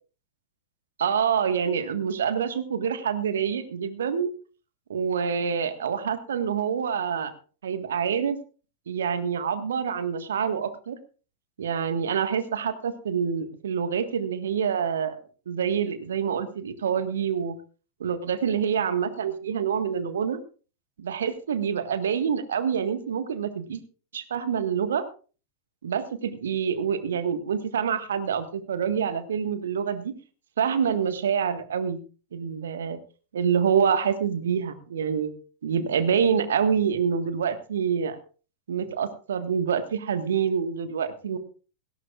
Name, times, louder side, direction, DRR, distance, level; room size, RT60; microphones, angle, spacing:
voice 1, 1.0-4.3 4.9-7.3 7.6-8.4 8.9-11.0 11.6-15.2 15.5-17.6 18.0-20.4 21.0-23.8 24.1-25.0 25.8-30.1 30.6-32.0 32.3-33.0 33.3-35.3 35.6-38.2 38.7-41.4, right 7 dB, 65° right, 10 dB, 1.6 m, -26 dB
17.5 x 17.5 x 2.4 m, 0.37 s
figure-of-eight pair, 90°, 0 cm